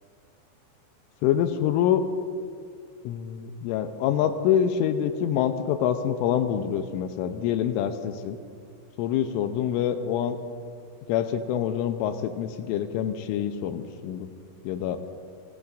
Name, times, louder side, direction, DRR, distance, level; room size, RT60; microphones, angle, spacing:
voice 1, 1.2-2.0 3.0-8.4 9.0-10.4 11.1-14.3 14.6-15.0, left 9 dB, 85° left, 8 dB, 3.2 m, -26 dB
28.5 x 18.0 x 2.6 m, 2.2 s
omnidirectional pair, 5.7 m